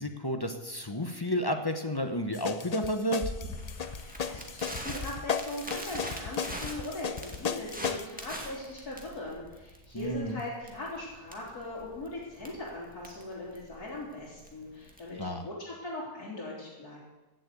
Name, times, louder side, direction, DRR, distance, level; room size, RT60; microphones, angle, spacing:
voice 1, 0.0-3.2 9.9-10.4 15.2-15.4, equal, 20° left, 6 dB, 0.8 m, -31 dB
sound 1, 2.3-8.1, left 7 dB, 90° left, 0.3 m, -35 dB
Crackle, 3.2-15.2, equal, 5° right, 2.0 m, -42 dB
voice 2, 4.0-17.0, left 1 dB, 75° left, -8 dB, 4.1 m, -40 dB
16.0 x 7.7 x 8.4 m, 1.1 s
omnidirectional pair, 1.6 m